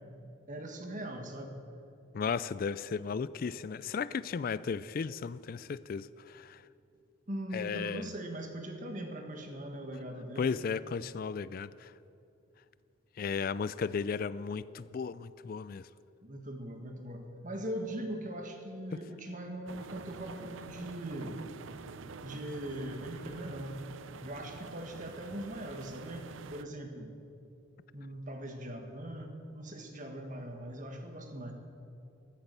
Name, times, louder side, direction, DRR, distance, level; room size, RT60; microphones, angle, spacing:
voice 1, 0.5-1.6 7.3-10.5 16.2-21.3 22.2-23.8 24.2-27.1 27.9-31.5, right 1 dB, 40° right, 4 dB, 1.7 m, -41 dB
voice 2, 2.1-6.6 7.5-8.1 10.4-11.9 13.2-15.8, left 5 dB, 45° left, 16 dB, 0.3 m, -35 dB
sound 1, 19.7-26.6, right 5 dB, 75° right, 0.5 m, -47 dB
15.0 x 13.0 x 6.8 m, 2.7 s
head